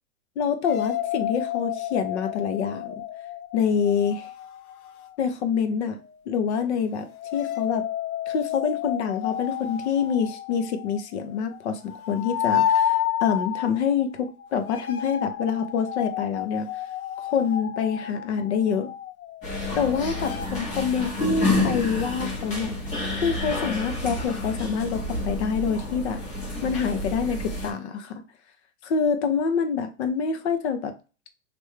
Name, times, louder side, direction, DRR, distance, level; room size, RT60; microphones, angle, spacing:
voice 1, 0.4-2.9 3.5-4.3 5.2-6.0 6.3-7.9 8.3-16.7 17.2-18.9 19.8-22.8 23.1-26.2 26.6-28.2 28.8-30.9, left 6 dB, 50° left, 0.7 m, -26 dB
sound 1, 0.7-5.3 7.1-20.5, left 10 dB, 85° left, 0.6 m, -31 dB
sound 2, 19.4-27.7, left 2 dB, 15° left, 0.8 m, -29 dB
3.3 x 2.6 x 3.1 m
hypercardioid pair, 145°, 42 cm